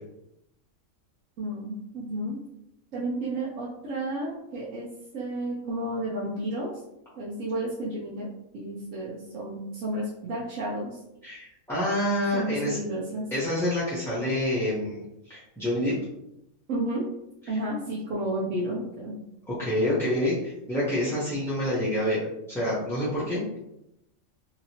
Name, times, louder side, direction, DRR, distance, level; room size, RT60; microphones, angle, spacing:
voice 1, 1.4-2.4 2.9-4.9 5.1-6.7 7.1-8.3 8.5-11.0 12.3-13.3 16.7-17.1 17.5-19.2, right 1 dB, 80° right, -6 dB, 1.1 m, -32 dB
voice 2, 11.2-12.8 13.3-15.0 15.3-15.9 19.5-23.6, left 1 dB, 5° left, -10 dB, 0.6 m, -27 dB
2.9 x 2.8 x 2.8 m, 0.85 s
omnidirectional pair, 1.4 m